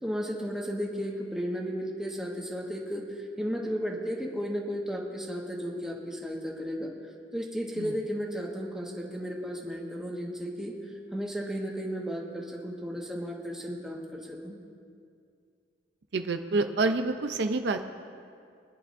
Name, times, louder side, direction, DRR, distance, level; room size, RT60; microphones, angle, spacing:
voice 1, 0.0-6.9 7.3-10.7 11.1-14.6, equal, 5° right, -2 dB, 1.5 m, -34 dB
voice 2, 16.1-17.8, right 3 dB, 65° right, 6 dB, 0.6 m, -27 dB
25.5 x 10.5 x 2.6 m, 2.3 s
head